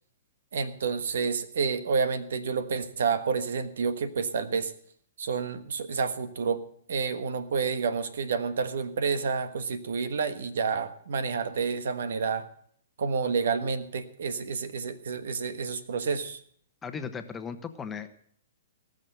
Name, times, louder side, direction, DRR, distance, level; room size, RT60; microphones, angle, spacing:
voice 1, 0.5-4.7 5.2-6.6 6.9-12.5 13.0-16.4, right 5 dB, 75° right, 12 dB, 1.3 m, -29 dB
voice 2, 16.8-18.1, left 6 dB, 15° left, 8 dB, 1.1 m, -36 dB
18.5 x 6.5 x 7.9 m, 0.62 s
hypercardioid pair, 135°, 0 cm